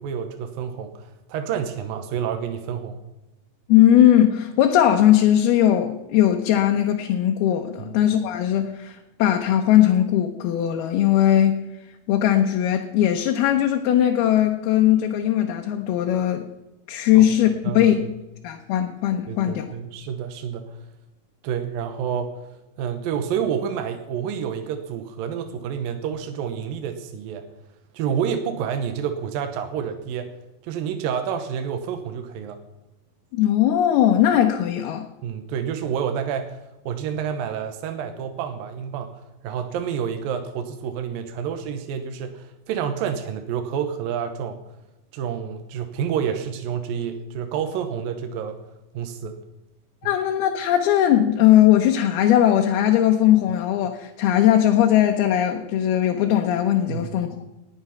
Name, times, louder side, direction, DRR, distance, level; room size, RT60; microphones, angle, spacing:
voice 1, 0.0-3.0 7.8-8.0 17.1-17.3 17.6-18.0 19.3-20.8 21.4-22.3 22.8-27.4 27.9-30.3 30.6-32.6 35.2-36.6 36.9-44.6 45.1-48.6 48.9-49.3 50.0-50.2 56.9-57.2, right 8 dB, 75° right, 7 dB, 2.6 m, -29 dB
voice 2, 3.7-11.6 12.1-16.5 16.9-18.0 18.4-19.7 33.3-35.1 50.0-57.3, left 11 dB, 85° left, 3 dB, 2.8 m, -19 dB
19.0 x 8.5 x 5.7 m, 1.0 s
omnidirectional pair, 4.4 m